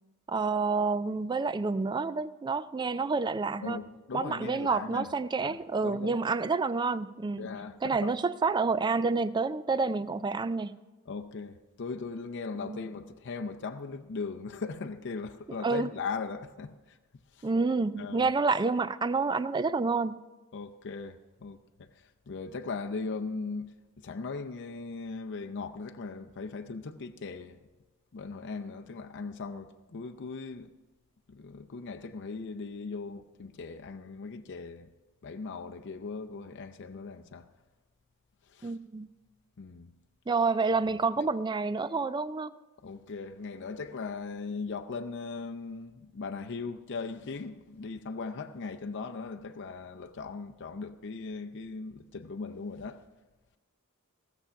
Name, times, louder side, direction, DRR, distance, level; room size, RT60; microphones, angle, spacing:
voice 1, 0.3-3.8 4.1-7.4 7.8-10.8 12.6-12.8 15.6-15.9 17.4-20.2 38.6-39.1 40.3-42.5, right 4 dB, 20° right, 0.3 m, -28 dB
voice 2, 3.6-5.1 5.4-6.2 7.4-8.1 11.1-17.0 17.3-17.5 18.0-18.3 20.5-27.6 28.1-30.7 31.3-34.9 35.2-37.5 38.4-38.8 39.6-39.9 42.8-53.0, left 4 dB, 55° left, 0.5 m, -39 dB
16.5 x 7.0 x 5.7 m
head